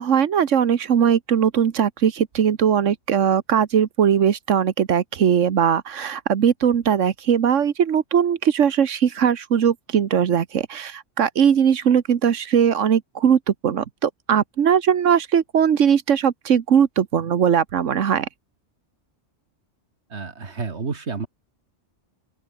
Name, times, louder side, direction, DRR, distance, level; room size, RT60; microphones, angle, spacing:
voice 1, 0.0-18.3, right 8 dB, 90° right, 1.5 m, -20 dB
voice 2, 20.1-21.3, right 4 dB, 65° right, 2.2 m, -30 dB
open air
omnidirectional pair, 1.2 m